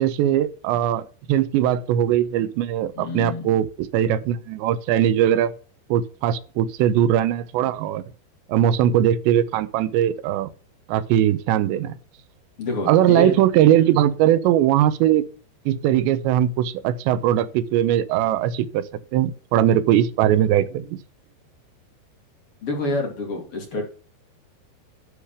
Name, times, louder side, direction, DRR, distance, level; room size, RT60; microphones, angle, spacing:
voice 1, 0.0-5.5 5.9-8.0 8.5-10.5 10.9-11.9 12.9-15.3 15.7-21.0, right 11 dB, 85° right, 3.1 m, -20 dB
voice 2, 2.9-3.5 12.6-13.4 13.7-14.0 22.6-23.8, left 2 dB, 40° left, 2.8 m, -28 dB
11.5 x 5.0 x 7.0 m
omnidirectional pair, 5.0 m